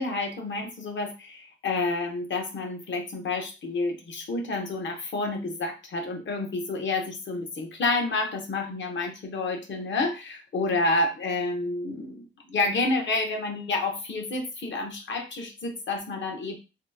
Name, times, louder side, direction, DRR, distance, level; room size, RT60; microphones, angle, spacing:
voice 1, 0.0-16.5, left 2 dB, 65° left, 3 dB, 0.8 m, -29 dB
2.9 x 2.3 x 3.4 m, 0.28 s
wide cardioid pair, 175°, 20 cm